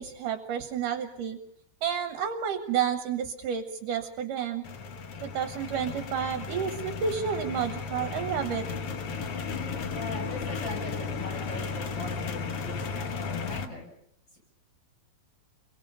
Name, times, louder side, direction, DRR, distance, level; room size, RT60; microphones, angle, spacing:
voice 1, 0.0-1.4 1.8-4.7 5.2-8.7, right 8 dB, 65° right, 8 dB, 2.4 m, -30 dB
sound 1, 4.6-13.7, left 4 dB, 60° left, 1.6 m, -35 dB
sound 2, 7.4-13.4, left 9 dB, 80° left, 4.1 m, -44 dB
voice 2, 9.9-13.9, left 2 dB, 30° left, -1 dB, 7.4 m, -40 dB
29.0 x 23.5 x 5.6 m, 0.70 s
omnidirectional pair, 4.4 m